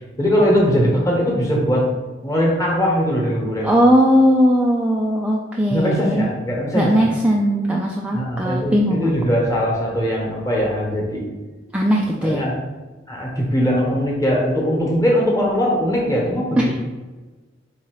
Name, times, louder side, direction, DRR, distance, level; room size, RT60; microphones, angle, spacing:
voice 1, 0.2-1.9 2.2-3.7 5.7-7.1 8.1-11.2 12.2-12.5 13.1-16.7, equal, 15° left, -3 dB, 1.1 m, -20 dB
voice 2, 3.6-6.3 6.7-9.1 11.7-12.4 16.6-16.7, equal, 5° right, -2 dB, 0.3 m, -18 dB
4.0 x 2.9 x 4.6 m, 1.3 s
head